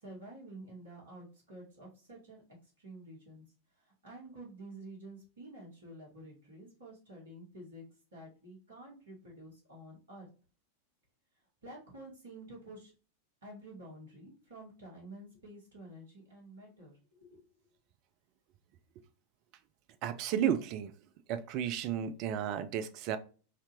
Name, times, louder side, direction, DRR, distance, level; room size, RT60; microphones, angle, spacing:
voice 1, 0.0-2.4 2.8-3.4 4.0-7.8 8.1-10.3 11.6-12.9 13.4-17.4, right 1 dB, 65° right, -3 dB, 1.9 m, -50 dB
voice 2, 20.0-20.9 21.3-23.2, right 9 dB, 40° right, 11 dB, 0.4 m, -33 dB
4.1 x 2.7 x 3.0 m, 0.37 s
figure-of-eight pair, 90°, 0 cm